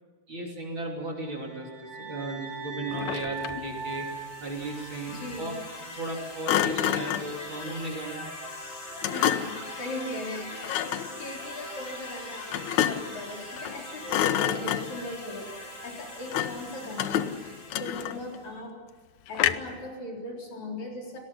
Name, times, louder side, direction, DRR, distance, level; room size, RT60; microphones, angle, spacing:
voice 1, 0.3-4.1 4.4-5.5 5.9-8.2, right 2 dB, 35° right, 0 dB, 3.6 m, -36 dB
sound 1, 1.1-5.4, right 5 dB, 60° right, 7.1 m, -40 dB
Thump thud, 2.9-3.7 6.5-7.4 9.0-9.7 10.6-11.1 12.5-13.2 13.6-13.8 14.1-15.1 16.3-16.7 17.0-18.4 19.4-19.8, left 11 dB, 75° left, 1.9 m, -28 dB
sound 2, 3.4-18.5, left 1 dB, 30° left, 6.1 m, -42 dB
voice 2, 5.1-5.5 9.1-15.6 15.8-18.8 19.3-21.2, left 1 dB, 55° left, 0 dB, 5.1 m, -39 dB
30.0 x 19.5 x 5.6 m, 1.5 s
omnidirectional pair, 3.9 m